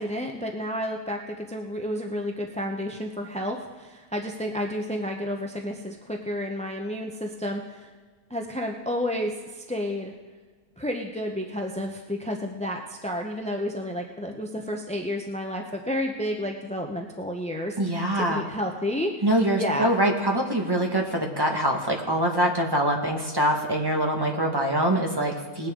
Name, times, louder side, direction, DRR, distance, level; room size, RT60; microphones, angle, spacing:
voice 1, 0.0-7.9 8.3-10.1 10.8-18.0 18.3-19.2 19.5-19.9, equal, 10° left, 2 dB, 0.4 m, -31 dB
voice 2, 17.8-18.4 19.2-25.7, right 1 dB, 15° right, 0 dB, 1.5 m, -24 dB
20.0 x 9.6 x 3.8 m, 1.4 s
omnidirectional pair, 1.6 m